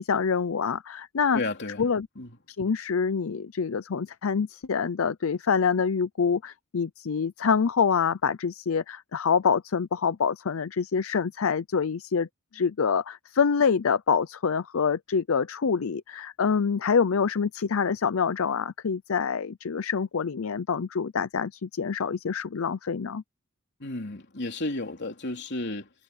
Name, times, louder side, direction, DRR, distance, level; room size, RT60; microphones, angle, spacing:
voice 1, 0.0-1.4 1.8-2.1 2.6-12.3 12.5-23.2, left 6 dB, 75° left, 0.6 m, -26 dB
voice 2, 1.3-1.9 2.2-2.4 23.8-25.9, left 2 dB, 55° left, 3.5 m, -33 dB
head